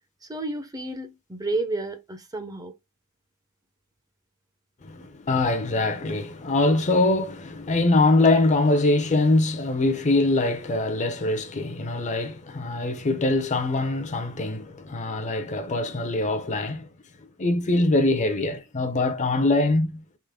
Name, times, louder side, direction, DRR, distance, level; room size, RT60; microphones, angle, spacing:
voice 1, 0.3-2.7, right 2 dB, 15° right, 0.6 m, -31 dB
voice 2, 4.8-16.9 17.4-20.0, left 2 dB, 35° left, 0.6 m, -23 dB
3.8 x 3.0 x 3.4 m
head